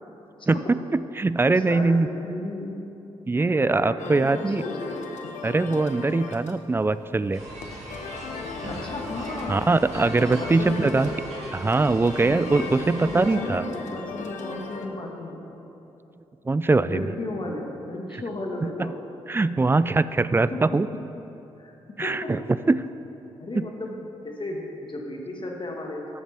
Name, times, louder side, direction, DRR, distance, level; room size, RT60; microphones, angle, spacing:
voice 1, 0.5-2.1 3.3-4.6 5.4-7.4 9.5-11.1 11.5-13.6 16.5-17.1 18.1-18.2 18.6-18.9 19.3-20.9 22.0-22.8 23.5-23.7, right 3 dB, 20° right, 15 dB, 0.3 m, -22 dB
voice 2, 1.5-2.8 3.3-5.2 8.7-9.7 10.3-11.2 12.2-12.7 13.0-15.6 16.8-19.1 20.5-20.6 21.6-21.7 22.0-22.3 23.4-24.0 24.2-26.1, left 2 dB, 40° left, 0 dB, 1.7 m, -34 dB
sound 1, 4.0-14.9, left 4 dB, 70° left, 0.8 m, -38 dB
sound 2, 7.3-13.4, right 1 dB, 60° right, 2.3 m, -38 dB
13.0 x 7.1 x 3.5 m, 2.9 s
hypercardioid pair, 40°, 13 cm